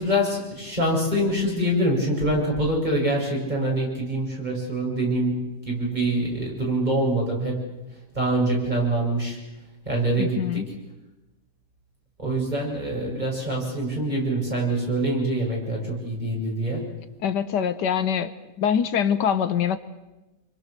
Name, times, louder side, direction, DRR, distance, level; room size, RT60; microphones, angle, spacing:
voice 1, 0.0-7.6 8.1-9.4 9.9-10.7 12.2-16.9, right 1 dB, 25° right, -2 dB, 7.6 m, -25 dB
voice 2, 10.2-10.6 17.2-18.3 18.6-19.8, left 8 dB, 80° left, 12 dB, 1.6 m, -24 dB
28.0 x 24.5 x 6.7 m, 1.0 s
omnidirectional pair, 1.8 m